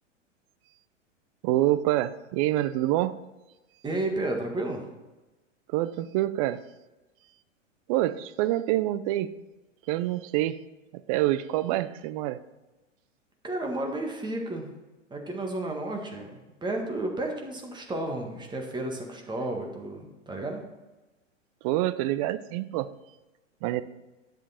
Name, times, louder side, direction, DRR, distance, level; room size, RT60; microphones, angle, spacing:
voice 1, 1.4-3.2 5.7-6.6 7.9-9.3 9.9-10.6 10.9-12.4 21.6-22.9 23.6-23.8, right 15 dB, 30° right, 14 dB, 0.4 m, -26 dB
voice 2, 3.8-4.8 13.4-14.7 15.1-20.6, right 2 dB, 10° right, 2 dB, 1.7 m, -32 dB
10.5 x 7.0 x 4.3 m, 1.1 s
figure-of-eight pair, 105°, 37 cm